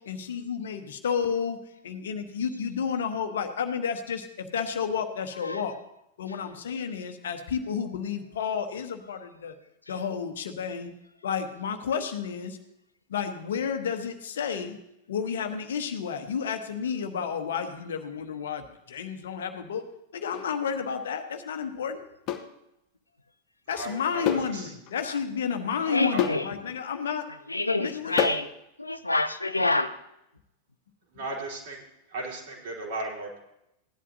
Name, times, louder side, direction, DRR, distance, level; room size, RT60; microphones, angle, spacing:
voice 1, 0.1-1.6 1.8-5.7 6.2-9.5 9.9-10.9 11.2-12.6 13.1-14.8 15.1-19.8 20.1-22.0 23.7-27.3 27.8-28.2, left 7 dB, 65° left, 7 dB, 1.1 m, -31 dB
sound 1, 20.3-20.5 22.3-22.5 24.3-24.6 24.9-25.0 26.2-26.5 28.2-28.5, left 9 dB, 35° left, 0.9 m, -28 dB
voice 2, 23.7-24.7 25.8-26.3 31.1-33.4, right 2 dB, 55° right, -3 dB, 3.9 m, -36 dB
voice 3, 25.9-26.5 27.5-28.5 28.8-30.0, left 2 dB, 85° left, 11 dB, 0.6 m, -27 dB
17.0 x 11.0 x 2.8 m, 0.85 s
figure-of-eight pair, 90°, 0 cm